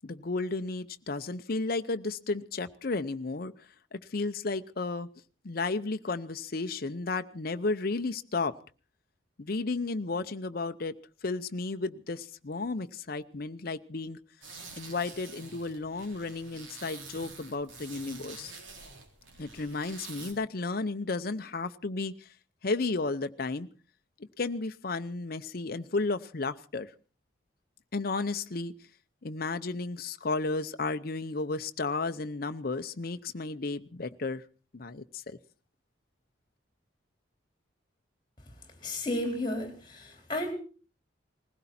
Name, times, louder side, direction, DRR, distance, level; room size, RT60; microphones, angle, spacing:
voice 1, 0.0-3.5 3.9-5.1 5.4-8.5 9.4-10.9 11.2-14.2 14.8-18.5 19.4-22.1 22.6-23.7 24.4-26.9 27.9-28.7 29.2-34.4 34.7-35.4, left 3 dB, 50° left, 9 dB, 0.7 m, -33 dB
sound 1, 14.4-20.3, right 4 dB, 90° right, 3.7 m, -47 dB
voice 2, 38.8-40.5, left 1 dB, 25° left, 4 dB, 4.1 m, -33 dB
20.0 x 16.0 x 4.3 m, 0.37 s
head